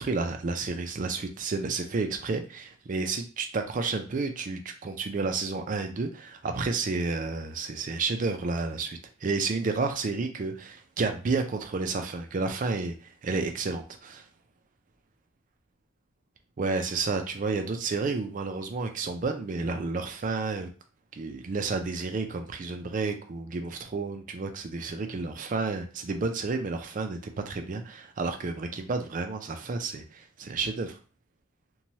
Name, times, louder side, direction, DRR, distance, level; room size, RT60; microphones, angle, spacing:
voice 1, 0.0-14.2 16.6-20.7 21.1-31.0, right 3 dB, 40° right, 6 dB, 0.4 m, -31 dB
3.0 x 2.2 x 2.7 m, 0.36 s
head